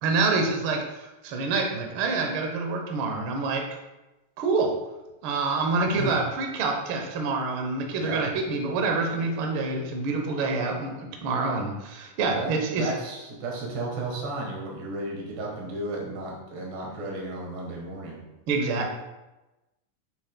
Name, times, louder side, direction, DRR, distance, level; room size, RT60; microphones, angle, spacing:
voice 1, 0.0-3.6 4.4-4.7 5.2-12.9 18.5-18.9, right 3 dB, 80° right, 2 dB, 1.1 m, -27 dB
voice 2, 5.9-6.2 8.0-8.2 12.3-18.2, right 2 dB, 50° right, -2 dB, 1.8 m, -34 dB
7.1 x 6.0 x 2.2 m, 1.0 s
omnidirectional pair, 3.6 m